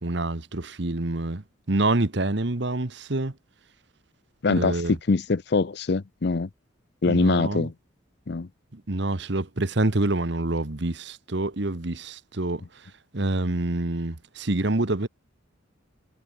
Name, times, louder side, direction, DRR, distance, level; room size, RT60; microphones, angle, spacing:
voice 1, 0.0-1.4 1.7-3.3 4.5-5.0 7.1-7.7 8.7-12.6 13.1-15.1, right 2 dB, 55° right, 1.3 m, -26 dB
voice 2, 4.4-6.5 7.0-7.7 8.3-8.5, left 3 dB, 55° left, 0.5 m, -23 dB
head